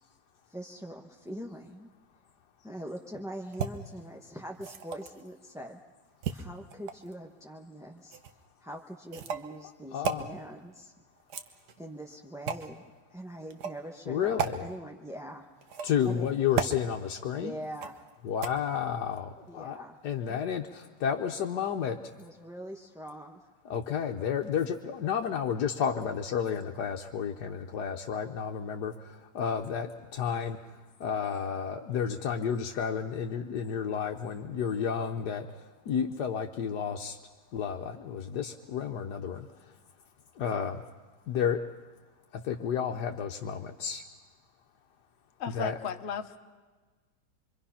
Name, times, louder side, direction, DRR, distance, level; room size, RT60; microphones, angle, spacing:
voice 1, 0.5-1.9 2.6-5.8 6.3-8.2 8.6-10.9 11.8-12.8 13.1-15.4 16.0-16.3 17.3-17.9 19.5-20.0 20.3-20.4 22.1-23.4, right 1 dB, 5° right, 0 dB, 0.7 m, -43 dB
sound 1, 3.5-3.7 4.5-5.2 6.2-7.1 8.1-8.3 9.1-9.5 10.0-10.2 11.2-11.8 12.5-12.7 13.5-13.8 14.4-14.5 15.6-16.1 16.5-16.8 17.8-18.1 18.4-18.5, right 7 dB, 65° right, 1.6 m, -33 dB
voice 2, 9.9-10.3 14.1-14.6 15.8-17.5 18.2-22.0 23.6-37.2 37.5-39.7 40.3-40.8 41.3-41.6 42.3-44.0 45.5-45.8, left 7 dB, 70° left, 2 dB, 1.4 m, -31 dB
voice 3, 45.4-46.4, left 6 dB, 45° left, 7 dB, 1.1 m, -35 dB
26.0 x 24.0 x 5.7 m, 1.3 s
omnidirectional pair, 1.9 m